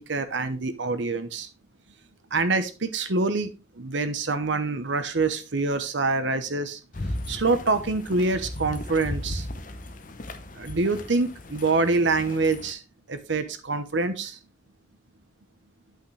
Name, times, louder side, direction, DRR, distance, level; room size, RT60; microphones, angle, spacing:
voice 1, 0.0-1.5 2.3-3.5 3.8-6.8 7.3-9.4 10.6-12.8 13.1-14.3, right 3 dB, 75° right, 11 dB, 0.9 m, -25 dB
sound 1, 6.9-12.7, left 1 dB, 45° left, 0.8 m, -36 dB
8.7 x 5.9 x 3.2 m, 0.32 s
head